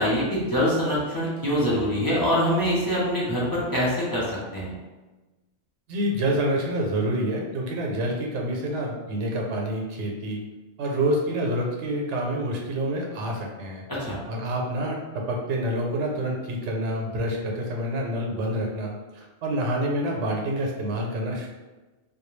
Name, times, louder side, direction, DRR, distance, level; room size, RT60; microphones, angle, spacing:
voice 1, 0.0-4.7 13.9-14.2, equal, 25° left, -8 dB, 0.5 m, -24 dB
voice 2, 5.9-10.4 10.8-13.8 14.3-21.5, right 1 dB, 80° right, 0 dB, 0.9 m, -27 dB
2.2 x 2.2 x 3.1 m, 1.2 s
omnidirectional pair, 1.2 m